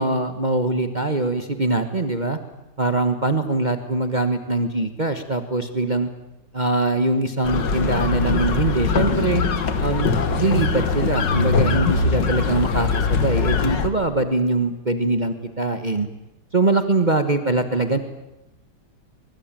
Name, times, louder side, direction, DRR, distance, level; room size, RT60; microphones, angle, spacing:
voice 1, 0.0-2.4 2.8-6.1 6.5-9.4 9.8-16.1 16.5-18.0, right 2 dB, 25° right, 8 dB, 1.3 m, -22 dB
sound 1, 7.4-13.9, left 4 dB, 85° left, 2.3 m, -21 dB
24.0 x 22.0 x 9.0 m, 0.92 s
omnidirectional pair, 1.9 m